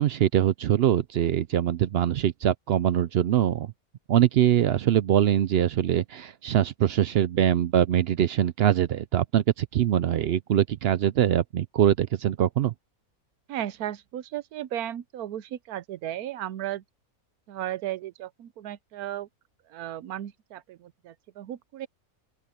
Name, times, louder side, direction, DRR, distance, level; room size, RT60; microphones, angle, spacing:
voice 1, 0.0-3.7 4.1-12.7, right 11 dB, 70° right, 0.6 m, -23 dB
voice 2, 13.5-16.8 17.5-19.3 19.7-21.9, right 12 dB, 85° right, 1.2 m, -35 dB
open air
omnidirectional pair, 1.5 m